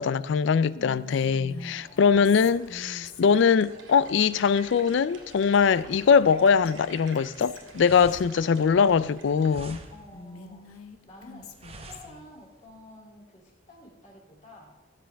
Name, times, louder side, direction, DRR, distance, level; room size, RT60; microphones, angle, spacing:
voice 1, 0.0-9.8, left 6 dB, 60° left, 0.3 m, -22 dB
Whispering, 0.7-3.6 5.6-6.4 6.6-6.7 7.1-8.3 10.1-12.2, left 4 dB, 90° left, 0.9 m, -45 dB
voice 2, 1.6-2.1 9.9-11.5 11.9-14.9, left 1 dB, 35° left, 2.8 m, -50 dB
sound 1, 1.8-9.6, right 2 dB, 65° right, 2.1 m, -49 dB
sound 2, 7.4-12.7, right 2 dB, 30° right, 0.8 m, -47 dB
16.0 x 7.6 x 3.4 m
head